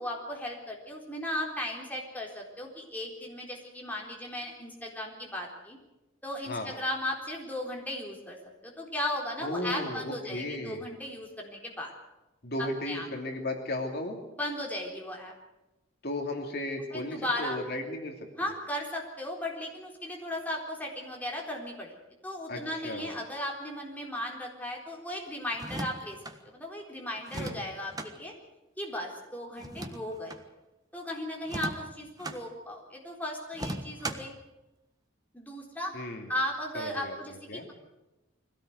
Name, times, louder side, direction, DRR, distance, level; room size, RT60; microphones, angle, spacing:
voice 1, 0.0-5.8 6.2-8.4 8.6-11.9 12.6-13.1 14.4-15.3 16.9-17.6 18.4-21.9 22.2-26.2 26.4-28.3 28.8-30.4 30.9-34.3 35.3-35.9 36.3-37.3, left 1 dB, 10° left, -1 dB, 4.0 m, -36 dB
voice 2, 9.4-10.8 12.4-14.2 16.0-18.5 22.5-23.2 27.3-27.6 35.9-36.3 36.7-37.6, left 1 dB, 55° left, 3 dB, 2.9 m, -35 dB
sound 1, 25.5-26.4 27.3-28.1 29.6-30.4 31.4-32.4 33.5-34.4, right 1 dB, 20° right, 1.4 m, -38 dB
22.5 x 17.0 x 8.1 m, 0.99 s
head